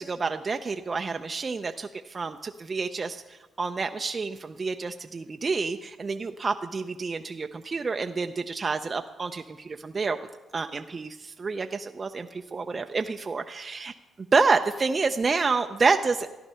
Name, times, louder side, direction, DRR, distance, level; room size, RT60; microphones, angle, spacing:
voice 1, 0.0-10.2 10.5-13.9 14.3-16.3, right 4 dB, 35° right, 6 dB, 0.5 m, -28 dB
13.5 x 10.5 x 5.6 m, 1.1 s
cardioid pair, 90°, 0 cm